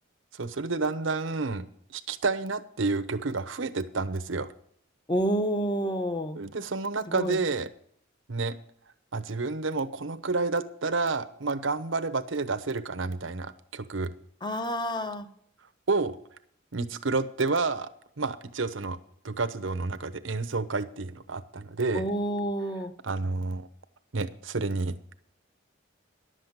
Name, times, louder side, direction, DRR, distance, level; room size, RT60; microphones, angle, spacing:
voice 1, 0.3-1.7 1.9-4.5 6.3-7.7 8.3-8.5 9.1-14.1 15.9-16.2 16.7-17.9 18.2-19.0 19.2-22.1 23.0-23.7 24.1-25.0, right 3 dB, 75° right, 12 dB, 0.9 m, -30 dB
voice 2, 5.1-6.4 7.1-7.4 14.4-15.3 21.9-22.9, equal, 25° left, 10 dB, 1.0 m, -29 dB
11.5 x 7.6 x 8.0 m, 0.65 s
head